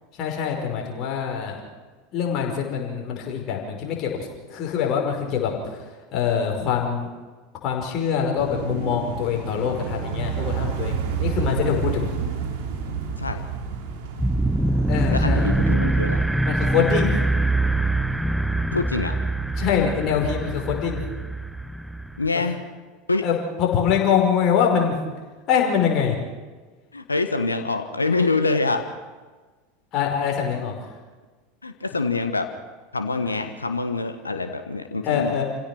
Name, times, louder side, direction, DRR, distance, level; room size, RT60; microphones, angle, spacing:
voice 1, 0.1-1.6 2.1-5.8 6.1-7.1 7.6-12.1 14.9-15.5 16.4-17.1 19.6-21.0 22.3-22.4 23.2-25.0 25.5-26.2 29.9-30.8 35.0-35.4, left 7 dB, 45° left, 1 dB, 5.2 m, -24 dB
sound 1, 8.4-15.7, right 6 dB, 60° right, 2.9 m, -30 dB
sound 2, 14.2-22.3, right 2 dB, 5° right, 0.8 m, -23 dB
voice 2, 15.1-16.3 18.7-19.2 22.2-22.6 23.1-23.2 26.9-28.8 31.6-32.5 32.9-35.3, left 3 dB, 85° left, 8 dB, 1.4 m, -25 dB
27.5 x 16.5 x 6.1 m, 1.3 s
figure-of-eight pair, 80°, 0 cm